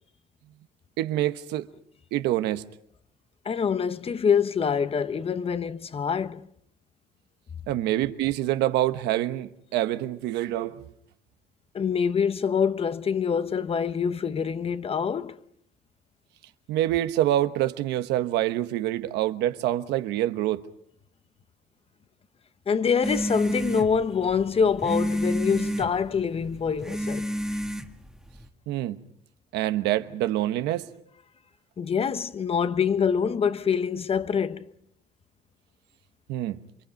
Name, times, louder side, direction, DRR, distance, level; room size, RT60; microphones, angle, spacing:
voice 1, 1.0-1.7 2.1-2.7 7.7-10.8 16.7-20.6 28.7-29.0 29.5-30.9 36.3-36.6, right 13 dB, 90° right, 1.2 m, -26 dB
voice 2, 3.4-6.5 11.7-15.4 22.7-27.3 31.8-34.7, left 6 dB, 35° left, 1.0 m, -25 dB
sound 1, 23.0-28.5, equal, 5° right, 1.6 m, -30 dB
28.5 x 24.5 x 5.3 m
cardioid pair, 110°, 17 cm